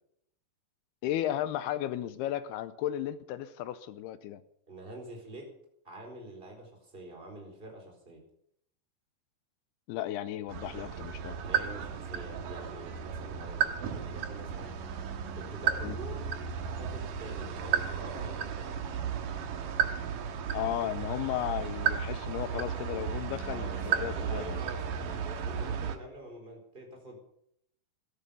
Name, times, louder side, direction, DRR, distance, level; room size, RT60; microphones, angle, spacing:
voice 1, 1.0-4.4 9.9-11.3 15.8-16.0 20.5-24.6, left 12 dB, 80° left, 14 dB, 2.5 m, -34 dB
voice 2, 4.7-5.5 5.8-8.2 11.3-14.7 15.3-16.3 16.6-18.8 23.5-27.2, right 1 dB, 10° right, 1 dB, 4.0 m, -46 dB
sound 1, 10.5-26.0, right 8 dB, 60° right, 2.6 m, -34 dB
15.5 x 12.5 x 7.0 m, 0.71 s
omnidirectional pair, 5.0 m